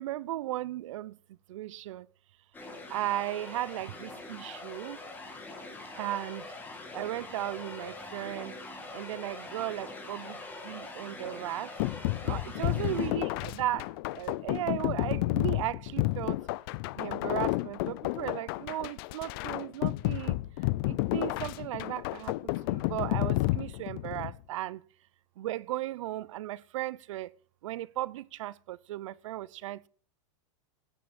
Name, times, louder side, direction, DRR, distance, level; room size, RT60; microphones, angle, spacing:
voice 1, 0.0-2.1 2.9-5.0 5.9-6.5 6.9-8.5 8.9-10.4 10.6-11.7 12.2-13.9 14.1-16.4 16.9-20.4 20.9-22.3 22.7-24.8 25.4-27.3 27.6-29.9, right 15 dB, 70° right, 0.7 m, -36 dB
sound 1, 2.5-13.1, left 2 dB, 10° left, 2.8 m, -43 dB
sound 2, 11.8-24.4, left 20 dB, 45° left, 0.5 m, -31 dB
16.0 x 10.0 x 4.3 m
supercardioid pair, 160°, 16 cm